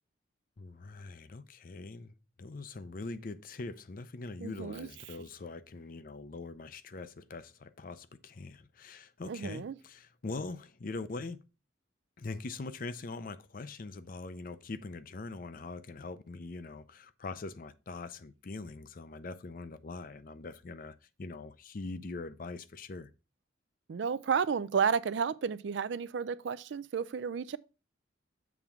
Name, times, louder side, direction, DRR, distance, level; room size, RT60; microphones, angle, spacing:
voice 1, 0.6-11.4 12.2-23.1, left 3 dB, 45° left, 0.5 m, -42 dB
voice 2, 4.4-4.9 9.3-9.8 23.9-27.6, right 6 dB, 65° right, 0.4 m, -32 dB
7.2 x 3.6 x 5.7 m
head